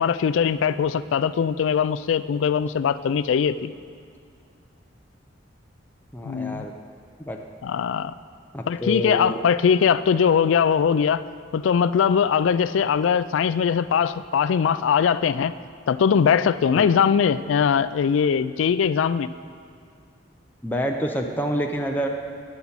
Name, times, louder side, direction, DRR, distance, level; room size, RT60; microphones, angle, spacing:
voice 1, 0.0-3.7 6.2-6.7 7.6-8.1 8.7-11.2 11.5-15.5 15.9-19.3, left 7 dB, 80° left, 15 dB, 0.3 m, -21 dB
voice 2, 6.1-6.7 7.2-7.4 8.5-9.4 16.8-16.9 20.6-22.1, equal, 10° left, 1 dB, 0.5 m, -27 dB
10.0 x 6.1 x 7.1 m, 2.4 s
head